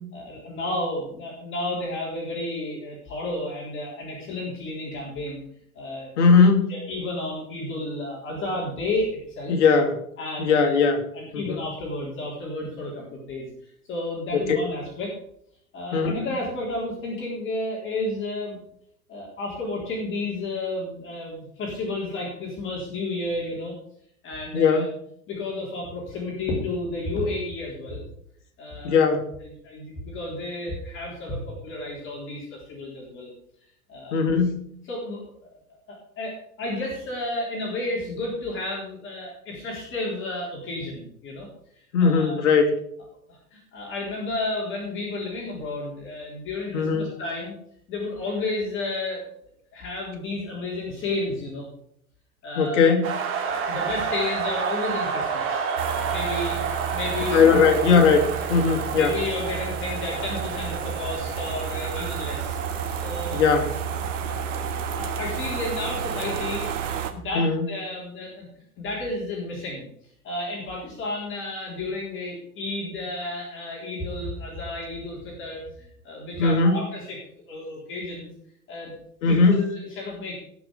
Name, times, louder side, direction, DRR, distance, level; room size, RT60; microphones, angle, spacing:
voice 1, 0.1-5.4 5.8-6.1 6.7-9.6 10.2-10.8 11.1-13.5 13.9-15.1 15.7-18.6 19.1-23.7 24.2-24.9 25.3-28.0 28.6-29.0 29.4-33.3 33.9-34.2 34.9-35.6 35.9-41.5 42.0-42.4 43.3-47.5 47.9-49.2 49.7-51.7 52.4-53.0 53.4-55.6 56.0-57.4 59.0-62.5 63.0-63.4 64.2-64.7 64.9-68.5 68.8-69.9 70.2-77.2 77.5-78.3 78.7-78.9 79.3-80.4, left 2 dB, 25° left, -3 dB, 3.8 m, -32 dB
voice 2, 6.2-6.7 9.5-10.0 10.4-11.0 11.3-11.6 14.3-14.6 15.9-16.1 24.5-24.9 28.8-29.2 34.1-34.6 41.9-42.8 46.7-47.2 52.6-53.1 57.3-58.2 58.5-59.2 63.3-63.7 67.3-67.7 76.4-76.8 79.2-79.6, left 5 dB, 55° left, 2 dB, 2.6 m, -19 dB
sound 1, 53.0-64.7, right 5 dB, 30° right, 2.5 m, -31 dB
sound 2, 55.8-67.1, right 7 dB, 55° right, 1.5 m, -31 dB
18.5 x 6.2 x 5.2 m, 0.69 s
figure-of-eight pair, 95°, 44 cm